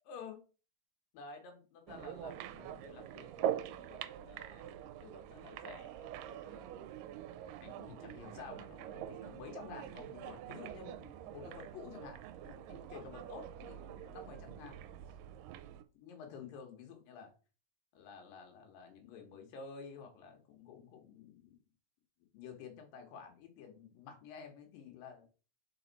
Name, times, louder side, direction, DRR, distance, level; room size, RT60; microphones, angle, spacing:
voice 1, 0.1-0.4 1.1-7.0 7.6-14.8 16.0-17.3 17.9-21.6 22.3-25.3, left 6 dB, 75° left, 3 dB, 2.9 m, -51 dB
sound 1, 1.9-15.8, right 11 dB, 80° right, 2.1 m, -44 dB
5.5 x 4.4 x 4.0 m, 0.36 s
omnidirectional pair, 4.2 m